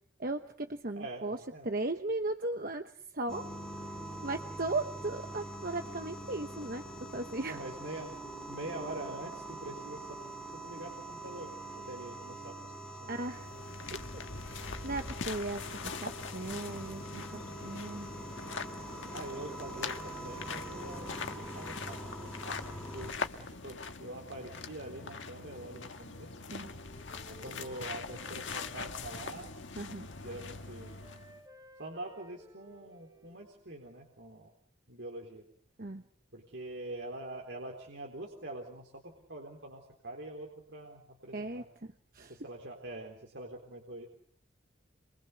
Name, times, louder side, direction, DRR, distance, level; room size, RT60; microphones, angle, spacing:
voice 1, 0.2-1.4 1.6-3.5 3.9-7.6 13.1-13.5 13.9-14.0 14.4-18.1 26.5-26.7 29.8-30.1 35.8-36.0 41.3-42.4, right 2 dB, 45° right, 7 dB, 1.1 m, -37 dB
voice 2, 0.9-1.7 7.5-8.1 8.5-10.2 10.6-12.7 13.0-13.2 19.1-22.6 22.9-23.1 23.5-26.4 27.2-29.5 30.2-31.0 31.8-34.5 34.9-35.4 36.3-39.0 39.3-41.7 42.3-44.1, right 1 dB, 65° right, 0 dB, 4.0 m, -44 dB
sound 1, 3.3-23.1, right 1 dB, 5° left, 4.2 m, -44 dB
sound 2, 13.1-31.4, left 4 dB, 70° left, 1.7 m, -42 dB
Wind instrument woodwind instrument, 26.1-29.7 30.1-33.7, equal, 20° right, 7.6 m, -57 dB
28.0 x 24.0 x 6.9 m, 0.62 s
head